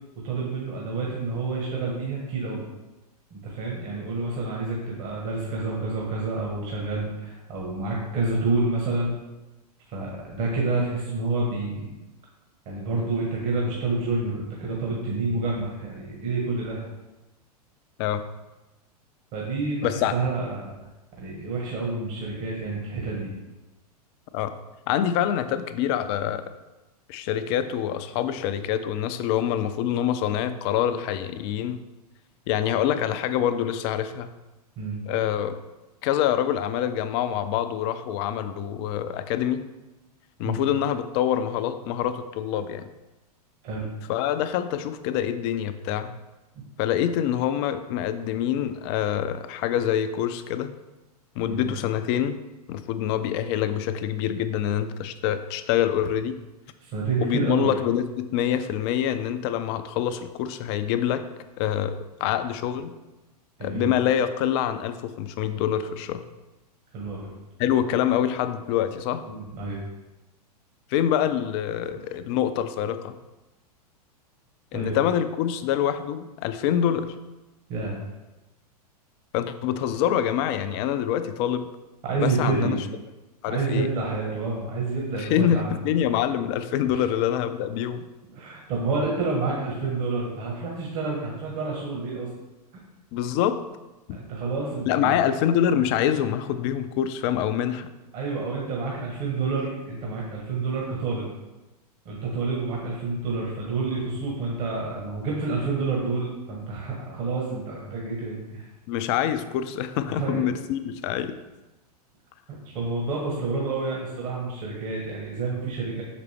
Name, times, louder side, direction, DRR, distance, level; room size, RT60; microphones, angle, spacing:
voice 1, 0.2-2.6 3.3-9.1 9.9-11.9 12.6-16.9 19.3-20.8 21.2-23.4 34.8-35.0 40.4-40.6 43.6-43.9 51.4-51.7 56.8-57.7 63.6-63.9 66.9-67.3 69.3-69.8 74.7-75.0 77.7-78.0 82.0-82.7 83.5-85.7 86.9-87.0 88.3-92.3 94.1-95.2 98.1-101.3 102.0-108.6 110.0-110.5 112.6-116.0, right 3 dB, 45° right, -3 dB, 1.5 m, -28 dB
voice 2, 19.8-20.1 24.3-24.5 24.9-26.4 27.1-31.8 32.5-34.3 35.1-35.6 36.0-39.6 40.4-42.9 44.1-46.1 46.8-50.7 51.4-52.4 52.7-56.4 57.2-61.2 61.6-62.9 63.6-66.2 67.6-69.2 70.9-73.1 74.7-77.1 79.3-81.7 82.2-82.8 83.4-83.9 85.2-88.0 93.1-93.6 94.1-94.2 94.9-97.9 108.9-111.3, left 10 dB, 40° left, 10 dB, 0.5 m, -25 dB
6.6 x 5.0 x 3.4 m, 1.1 s
figure-of-eight pair, 95°, 20 cm